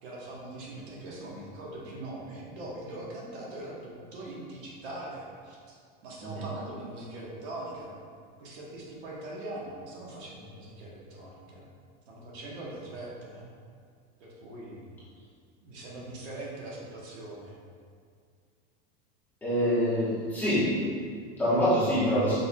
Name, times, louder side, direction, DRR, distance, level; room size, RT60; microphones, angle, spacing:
voice 1, 0.0-5.7 6.0-11.7 12.1-13.5 14.2-14.9 15.6-17.6, right 1 dB, 80° right, -4 dB, 1.2 m, -41 dB
voice 2, 19.4-20.7 21.0-22.4, equal, 5° left, -12 dB, 1.0 m, -26 dB
5.2 x 4.3 x 2.2 m, 2.1 s
supercardioid pair, 180°, 32 cm